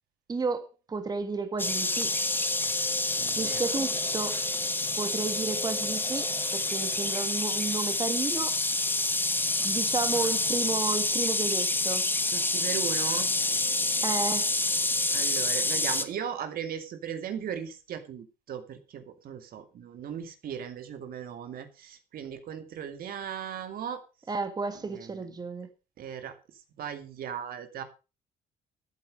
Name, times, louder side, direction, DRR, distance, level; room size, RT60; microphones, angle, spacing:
voice 1, 0.3-2.1 3.3-4.4 5.0-8.5 9.6-12.0 14.0-14.5 24.3-25.7, right 4 dB, 25° right, 2.0 m, -32 dB
sound 1, 1.6-16.0, left 2 dB, 10° left, 1.4 m, -28 dB
voice 2, 3.2-3.8 12.3-13.3 15.1-24.0 24.9-25.2 26.0-26.3 26.8-27.8, right 8 dB, 60° right, 2.3 m, -37 dB
14.0 x 8.4 x 5.2 m
cardioid pair, 110°, 17 cm